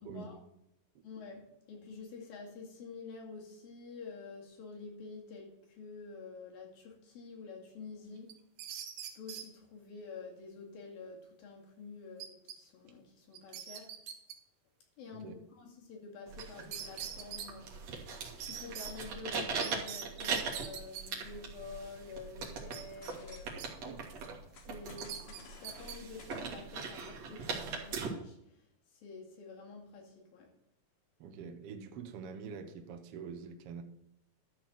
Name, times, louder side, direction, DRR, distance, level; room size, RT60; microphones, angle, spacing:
voice 1, 0.0-0.4 1.0-8.5 9.2-14.0 15.0-30.5, left 4 dB, 90° left, 4.0 m, -49 dB
sound 1, 8.3-9.5 12.2-12.6 12.9-13.0 13.3-14.4 16.4-16.5 16.7-17.5 18.4-18.9 19.6-21.0 22.7-23.7 24.0-24.3 25.0-26.0, right 9 dB, 90° right, 2.8 m, -43 dB
sound 2, 16.3-28.1, right 5 dB, 55° right, 2.7 m, -41 dB
sound 3, 22.6-23.8 24.5-27.7, left 2 dB, 70° left, 2.9 m, -56 dB
voice 2, 31.2-33.8, right 6 dB, 70° right, 1.4 m, -45 dB
12.5 x 4.4 x 7.6 m
omnidirectional pair, 4.0 m